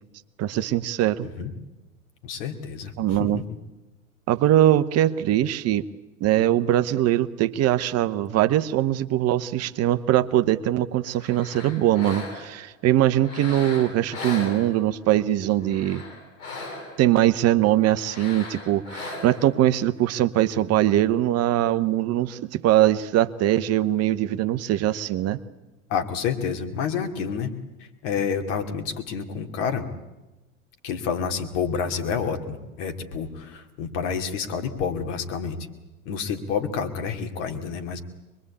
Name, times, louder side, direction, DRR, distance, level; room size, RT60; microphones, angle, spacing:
voice 1, 0.4-1.3 3.0-3.4 4.3-5.9 6.2-16.0 17.0-25.4, right 13 dB, 35° right, 11 dB, 1.0 m, -22 dB
voice 2, 2.2-2.9 3.2-3.4 25.9-27.5 27.8-29.9 30.8-35.6 36.0-38.0, left 6 dB, 60° left, 6 dB, 2.8 m, -29 dB
sound 1, 11.1-12.6 13.2-15.1 15.6-17.1 18.0-19.5, left 3 dB, 75° left, 7.9 m, -38 dB
24.0 x 21.5 x 8.5 m, 1.0 s
figure-of-eight pair, 85°, 41 cm